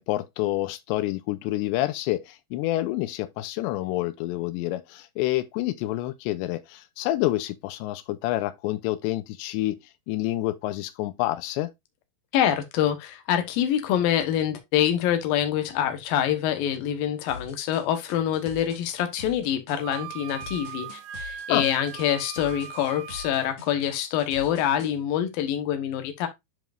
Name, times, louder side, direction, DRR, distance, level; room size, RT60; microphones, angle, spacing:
voice 1, 0.0-9.8 10.1-11.7 21.5-21.7, left 16 dB, 85° left, 2.9 m, -28 dB
voice 2, 12.3-26.3, left 10 dB, 65° left, 2.7 m, -25 dB
sound 1, 17.3-24.9, left 5 dB, 45° left, 2.3 m, -43 dB
Wind instrument woodwind instrument, 19.8-23.6, right 9 dB, 75° right, 2.6 m, -39 dB
10.5 x 4.9 x 2.6 m
omnidirectional pair, 4.9 m